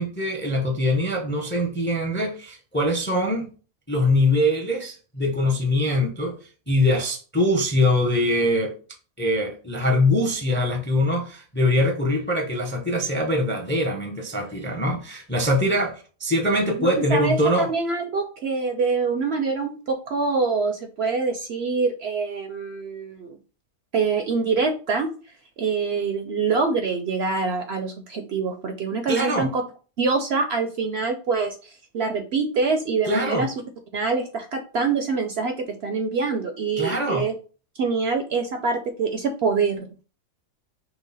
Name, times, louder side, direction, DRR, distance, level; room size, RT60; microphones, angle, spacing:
voice 1, 0.0-3.5 3.9-6.4 6.7-8.7 9.2-17.7 29.1-29.5 33.1-33.5 36.8-37.3, left 1 dB, 15° left, 0.4 m, -23 dB
voice 2, 16.8-23.4 23.9-25.1 25.6-29.6 30.0-33.5 33.9-35.5 35.8-37.3 37.8-40.0, right 4 dB, 65° right, 0.7 m, -25 dB
5.9 x 2.2 x 4.0 m
omnidirectional pair, 1.5 m